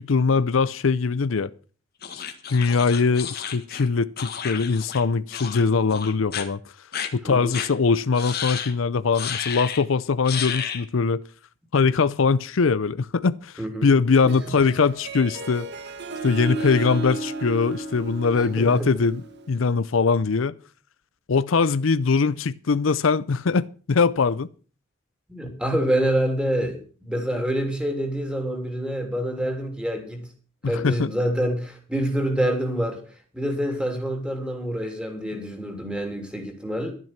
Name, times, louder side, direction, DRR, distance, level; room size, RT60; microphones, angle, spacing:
voice 1, 0.0-1.5 2.5-6.6 7.1-11.2 11.7-13.5 13.8-15.7 16.2-19.2 19.5-20.5 21.3-24.5 30.6-31.1, left 4 dB, 75° left, 0.6 m, -22 dB
sound 1, 2.0-5.0 5.3-5.6 5.9-6.5 6.9-7.1 7.5-7.7 8.2-8.7 9.1-9.8 10.3-10.8, left 8 dB, 50° left, 1.7 m, -32 dB
voice 2, 7.2-7.5 13.6-13.9 14.2-14.7 18.3-18.9 25.3-30.3 30.7-33.0 33.3-36.9, right 1 dB, 5° right, 3.1 m, -27 dB
Harp, 14.1-19.7, right 3 dB, 55° right, 1.5 m, -34 dB
12.5 x 10.5 x 5.8 m
head